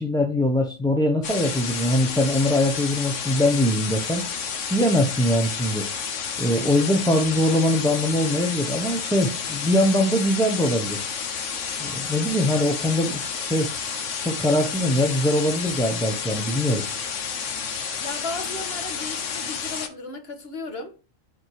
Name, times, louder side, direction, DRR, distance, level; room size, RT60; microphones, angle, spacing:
voice 1, 0.0-4.2 4.7-5.9 6.4-11.0 11.8-13.7 14.2-16.8, left 1 dB, 5° left, 0.8 m, -22 dB
sound 1, 1.2-19.9, left 6 dB, 75° left, 1.3 m, -30 dB
voice 2, 18.0-20.9, left 3 dB, 55° left, 1.5 m, -35 dB
9.5 x 4.5 x 4.7 m
omnidirectional pair, 1.3 m